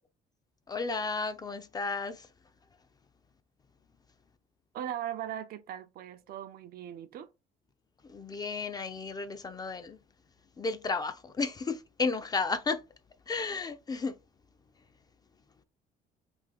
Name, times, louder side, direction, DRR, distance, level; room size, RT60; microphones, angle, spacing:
voice 1, 0.7-2.3 8.1-10.0 10.6-12.8 13.3-14.2, left 4 dB, 25° left, 0.4 m, -33 dB
voice 2, 4.7-7.3, right 10 dB, 65° right, 0.5 m, -39 dB
3.5 x 2.4 x 3.4 m
cardioid pair, 110°, 17 cm